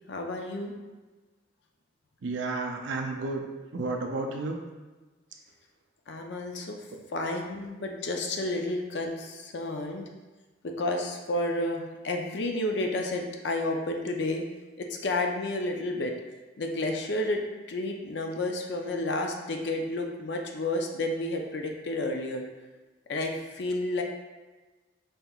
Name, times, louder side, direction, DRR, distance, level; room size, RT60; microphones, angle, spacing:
voice 1, 0.1-0.7 6.1-6.8 7.1-10.1 10.6-14.4 14.8-16.1 16.6-17.4 17.7-22.4 23.1-24.0, left 2 dB, 60° left, 2 dB, 0.5 m, -31 dB
voice 2, 2.2-3.4 3.7-4.6, right 3 dB, 70° right, 2 dB, 0.5 m, -31 dB
5.5 x 2.9 x 2.3 m, 1.2 s
head